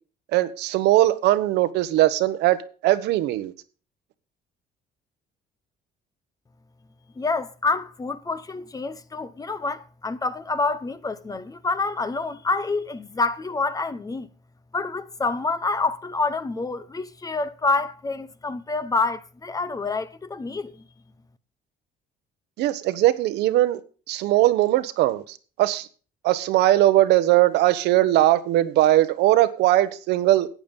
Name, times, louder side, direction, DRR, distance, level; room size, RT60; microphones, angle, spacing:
voice 1, 0.3-2.6 2.8-3.5 22.6-23.8 24.1-25.9 26.2-30.5, right 15 dB, 85° right, 1.1 m, -20 dB
voice 2, 7.2-14.3 14.7-20.8, left 3 dB, 20° left, 0.9 m, -27 dB
12.0 x 8.8 x 5.3 m
cardioid pair, 110°, 17 cm